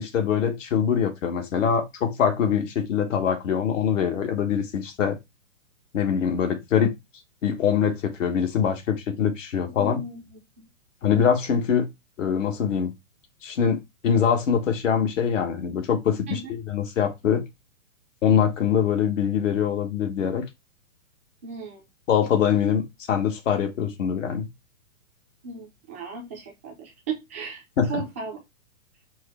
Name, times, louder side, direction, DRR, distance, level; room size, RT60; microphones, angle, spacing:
voice 1, 0.0-5.2 5.9-6.9 7.4-10.0 11.0-11.9 12.2-12.9 13.4-17.4 18.2-20.4 22.1-24.5 27.8-28.0, left 7 dB, 65° left, 1.2 m, -23 dB
voice 2, 9.8-10.2 10.6-10.7 16.3-16.4 21.4-21.8 25.4-27.6 27.9-28.4, right 4 dB, 10° right, 0.3 m, -35 dB
4.6 x 2.1 x 4.1 m
hypercardioid pair, 140°, 41 cm